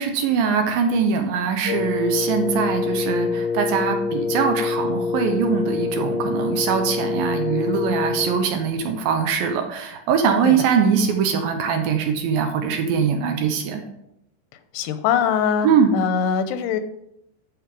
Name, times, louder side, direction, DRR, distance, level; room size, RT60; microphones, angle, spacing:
voice 1, 0.0-13.8 15.6-15.9, right 6 dB, 70° right, 5 dB, 2.5 m, -22 dB
Wind instrument woodwind instrument, 1.7-8.4, left 5 dB, 65° left, 3.6 m, -25 dB
voice 2, 10.2-10.6 14.7-16.8, left 7 dB, 85° left, 10 dB, 2.9 m, -23 dB
12.0 x 5.3 x 5.2 m, 0.80 s
omnidirectional pair, 4.7 m